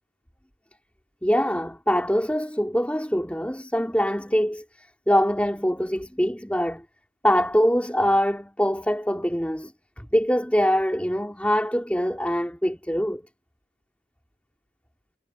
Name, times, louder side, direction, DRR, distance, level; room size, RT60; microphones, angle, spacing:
voice 1, 1.2-6.8 7.2-13.3, equal, 5° left, 3.9 m, -24 dB
head